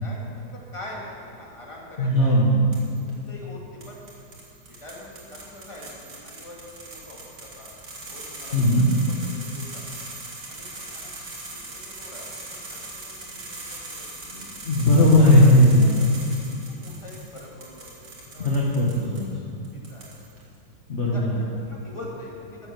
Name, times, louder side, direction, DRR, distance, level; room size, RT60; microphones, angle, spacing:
voice 1, 0.0-2.4 3.1-4.0 4.7-7.7 8.0-9.8 10.5-11.1 11.5-14.0 15.0-15.5 15.8-16.1 16.7-19.4 19.7-20.1 21.0-22.7, left 1 dB, 15° left, -3 dB, 2.1 m, -44 dB
voice 2, 2.0-2.6 8.5-8.9 14.3-15.9 18.4-19.5 20.9-21.3, left 1 dB, 40° left, -4 dB, 1.6 m, -18 dB
sound 1, 2.7-3.1 3.8-19.2 19.6-20.4, right 2 dB, 65° right, 3.0 m, -40 dB
13.5 x 8.0 x 6.7 m, 2.4 s
omnidirectional pair, 2.0 m